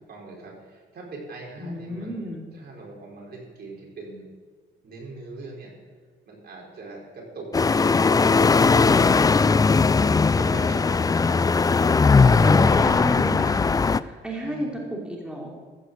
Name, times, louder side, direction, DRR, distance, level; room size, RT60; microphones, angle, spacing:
voice 1, 0.0-4.3 4.8-5.7 6.3-8.2 9.8-11.2 11.5-12.7 14.4-14.7, right 2 dB, 55° right, -3 dB, 4.8 m, -41 dB
voice 2, 1.6-2.5 12.4-15.5, equal, 5° right, -2 dB, 3.0 m, -32 dB
sound 1, 7.5-14.0, left 4 dB, 20° left, 0.4 m, -19 dB
14.5 x 6.5 x 7.8 m, 1.4 s
cardioid pair, 90°, 20 cm